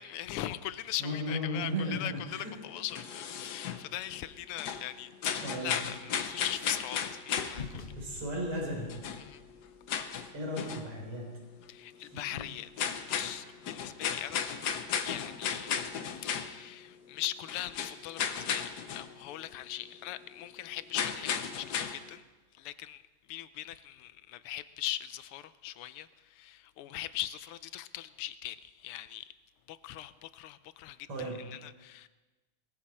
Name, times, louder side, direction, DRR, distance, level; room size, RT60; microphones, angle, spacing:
voice 1, 0.0-7.8 9.2-9.4 11.7-14.4 15.0-22.2 22.5-23.0 23.3-29.3 29.7-32.1, left 13 dB, 85° left, 1.6 m, -40 dB
voice 2, 1.0-2.5 5.4-5.8 8.0-8.9 10.3-11.3 12.0-12.5 31.1-31.4, equal, 85° right, 5.0 m, -35 dB
sound 1, 2.3-4.3 4.6-7.7 8.6-8.7 8.9-10.9 11.2-11.3 11.6-11.7 12.1-12.2 12.6-16.8 17.1-19.1 19.4-19.5 19.8-19.9 20.9-22.0, left 7 dB, 60° left, 1.2 m, -35 dB
sound 2, 4.7-7.0 7.4-11.3, left 5 dB, 40° left, 0.8 m, -49 dB
20.0 x 14.5 x 4.3 m
omnidirectional pair, 2.4 m